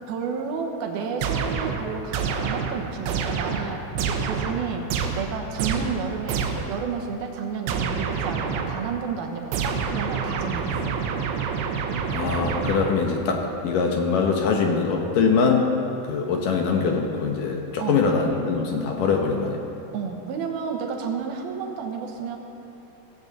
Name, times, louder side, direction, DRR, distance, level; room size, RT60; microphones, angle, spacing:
voice 1, 0.1-10.9 17.8-18.1 19.9-22.4, right 6 dB, 70° right, 2 dB, 3.0 m, -31 dB
sound 1, 1.2-6.8 7.7-9.0 9.5-13.2, right 6 dB, 90° right, 3.2 m, -28 dB
voice 2, 12.1-15.7 16.1-19.6, left 5 dB, 70° left, 2 dB, 2.3 m, -23 dB
18.0 x 16.0 x 4.0 m, 2.9 s
omnidirectional pair, 4.8 m